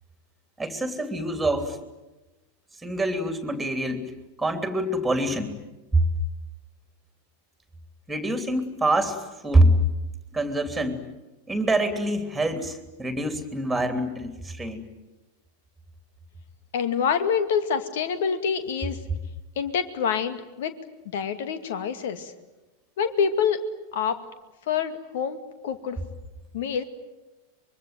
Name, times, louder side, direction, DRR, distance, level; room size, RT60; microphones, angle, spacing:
voice 1, 0.6-1.8 2.8-4.0 4.4-5.5 5.9-6.0 8.1-9.8 10.3-11.0 11.5-14.8, right 1 dB, 5° right, 7 dB, 3.2 m, -25 dB
voice 2, 16.7-19.0 19.6-20.7 21.1-22.3 23.0-23.6 23.9-24.2 24.7-25.4 25.6-26.0 26.5-26.8, left 7 dB, 55° left, 10 dB, 2.2 m, -26 dB
25.0 x 23.0 x 9.2 m, 1.1 s
figure-of-eight pair, 90°, 0 cm